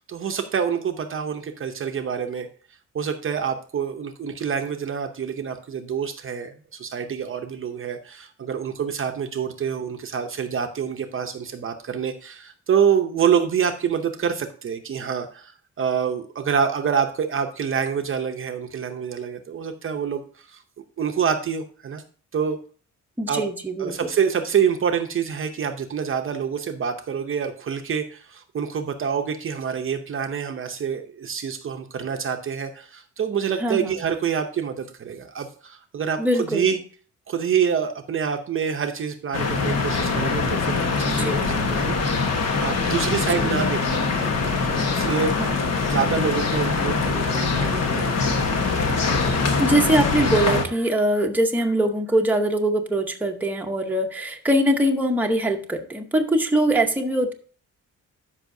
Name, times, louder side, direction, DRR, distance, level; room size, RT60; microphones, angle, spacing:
voice 1, 0.0-2.5 2.9-20.6 21.0-22.0 22.3-22.6 23.3-23.4 23.8-36.8 37.3-42.0 42.6-44.3 44.6-45.3 45.9-48.2, right 7 dB, 45° right, 6 dB, 0.7 m, -26 dB
voice 2, 23.2-24.0 33.6-34.0 36.2-36.8 41.1-41.3 43.4-43.5 45.4-45.5 49.6-57.3, right 1 dB, 5° right, 2 dB, 0.8 m, -22 dB
sound 1, 39.3-50.7, left 4 dB, 55° left, 1.2 m, -23 dB
13.0 x 5.6 x 2.6 m, 0.41 s
wide cardioid pair, 165°, 30 cm